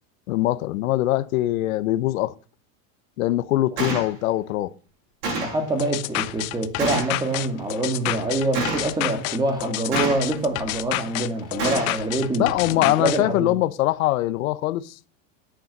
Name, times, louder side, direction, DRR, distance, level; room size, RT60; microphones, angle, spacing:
voice 1, 0.3-2.3 3.2-4.7 12.4-15.0, left 16 dB, 85° left, 1.0 m, -22 dB
Gunshot gunfire, 3.8-4.1 5.2-5.6 6.8-7.2 8.5-9.0 9.9-10.4 11.6-12.0, right 3 dB, 60° right, 7.6 m, -27 dB
voice 2, 5.4-13.6, right 2 dB, 10° right, 2.1 m, -25 dB
sound 1, 5.8-13.2, left 19 dB, 35° left, 0.7 m, -29 dB
10.0 x 8.9 x 5.4 m
supercardioid pair, 170°, 40 cm